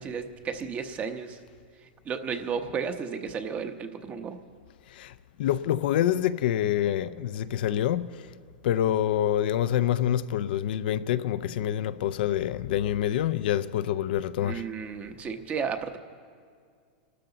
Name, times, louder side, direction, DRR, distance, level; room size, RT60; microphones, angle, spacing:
voice 1, 0.0-1.4 1.8-4.4 14.4-16.0, right 6 dB, 25° right, 0.9 m, -33 dB
voice 2, 4.9-8.3 8.6-14.6, left 11 dB, 70° left, 0.5 m, -26 dB
25.0 x 13.0 x 4.0 m
hypercardioid pair, 130°, 5 cm